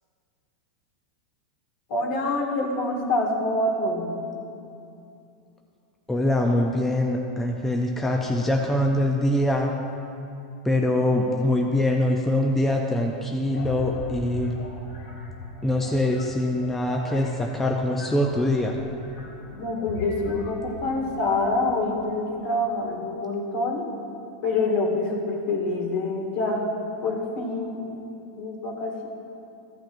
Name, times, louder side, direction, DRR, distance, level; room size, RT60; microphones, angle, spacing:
voice 1, 1.9-4.2 19.6-23.8 24.4-26.7 27.0-27.9 28.4-29.1, left 2 dB, 55° left, 0 dB, 1.9 m, -26 dB
voice 2, 6.1-9.7 10.6-14.5 15.6-18.8, left 1 dB, 5° left, 1 dB, 0.5 m, -23 dB
sound 1, 13.5-22.3, left 3 dB, 80° left, 1.8 m, -40 dB
14.5 x 8.8 x 2.6 m, 2.6 s
supercardioid pair, 155°, 4 cm